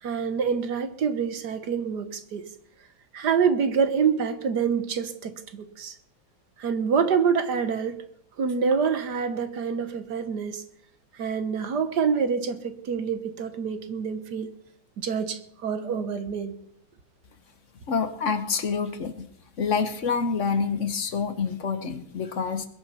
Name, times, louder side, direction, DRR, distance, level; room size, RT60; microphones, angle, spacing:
voice 1, 0.0-2.5 3.1-6.0 6.6-8.0 8.4-10.6 11.1-14.5 15.0-16.6, right 6 dB, 55° right, 1.6 m, -26 dB
voice 2, 17.9-19.3 19.6-22.7, left 5 dB, 45° left, 1.1 m, -27 dB
21.5 x 9.3 x 5.6 m
omnidirectional pair, 2.3 m